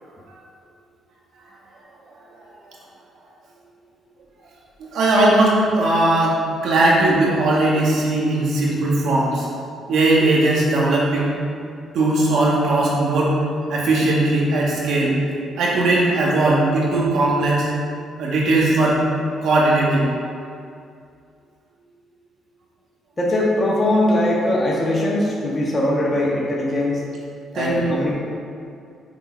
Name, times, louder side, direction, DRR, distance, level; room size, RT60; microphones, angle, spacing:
voice 1, 4.8-9.5 9.9-11.3 11.9-13.4 13.7-15.2 15.6-17.7 18.2-19.0 19.4-20.1 27.5-28.0, right 2 dB, 75° right, -4 dB, 1.7 m, -18 dB
voice 2, 23.2-27.0 27.5-28.2, left 1 dB, 25° left, -5 dB, 1.4 m, -20 dB
6.7 x 3.9 x 5.2 m, 2.3 s
cardioid pair, 90°, 0 cm